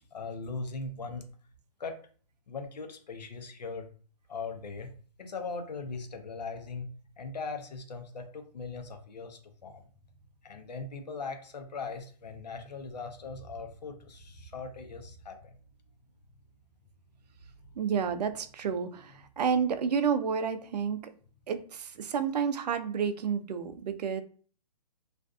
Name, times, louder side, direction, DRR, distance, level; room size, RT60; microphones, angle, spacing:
voice 1, 0.1-1.3 1.8-2.0 2.5-3.9 4.3-6.9 7.2-9.8 10.4-15.6 17.6-17.8 19.1-19.3, left 4 dB, 90° left, 6 dB, 0.7 m, -40 dB
voice 2, 17.8-21.0 21.5-24.2, right 6 dB, 75° right, 10 dB, 0.4 m, -30 dB
2.4 x 2.4 x 2.3 m, 0.43 s
hypercardioid pair, 150°, 21 cm